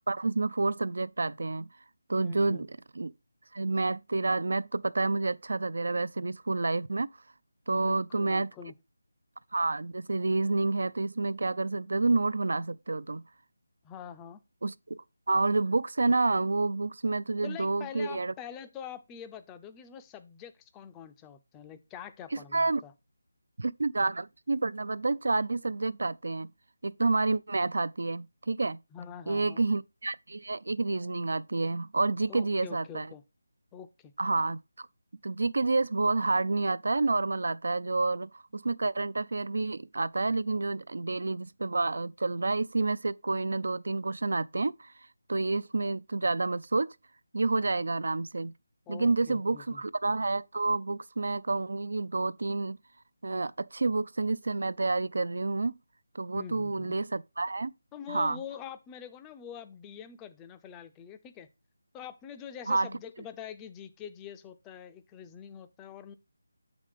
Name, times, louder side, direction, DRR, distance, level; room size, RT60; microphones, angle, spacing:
voice 1, 0.1-1.7 2.1-2.7 3.0-3.1 3.5-7.1 7.7-8.5 9.5-13.2 14.6-18.3 22.5-22.8 23.6-26.5 26.8-28.8 29.3-33.1 34.2-34.9 35.2-44.9 45.3-46.9 47.3-48.5 48.9-52.8 53.2-55.8 56.1-57.7 58.1-58.4 62.7-62.9, right 3 dB, 70° right, 0.3 m, -29 dB
voice 2, 2.2-2.6 7.7-8.7 13.8-14.4 17.4-22.9 28.9-29.7 32.3-33.2 33.7-34.1 48.9-49.8 56.3-57.0 57.9-61.5 61.9-66.1, left 8 dB, 10° left, 0.4 m, -45 dB
7.5 x 4.9 x 3.6 m
figure-of-eight pair, 170°, 0 cm